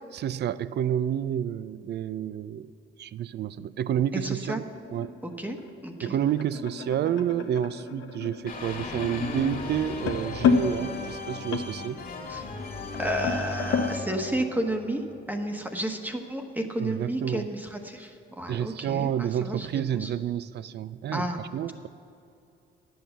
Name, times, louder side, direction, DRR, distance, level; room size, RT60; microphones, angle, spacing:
voice 1, 0.1-2.7 3.0-4.6 4.9-5.1 6.0-12.0 16.8-17.5 18.5-21.9, right 10 dB, 60° right, 16 dB, 0.4 m, -29 dB
voice 2, 4.2-4.6 5.2-5.6 5.8-6.2 12.3-12.4 13.0-15.0 15.3-20.1 21.1-21.4, right 1 dB, 10° right, 4 dB, 1.1 m, -31 dB
sound 1, 4.3-14.0, left 6 dB, 80° left, 0.9 m, -31 dB
sound 2, 8.5-15.4, left 2 dB, 45° left, 2.0 m, -37 dB
11.0 x 8.0 x 6.9 m, 2.7 s
cardioid pair, 90°, 20 cm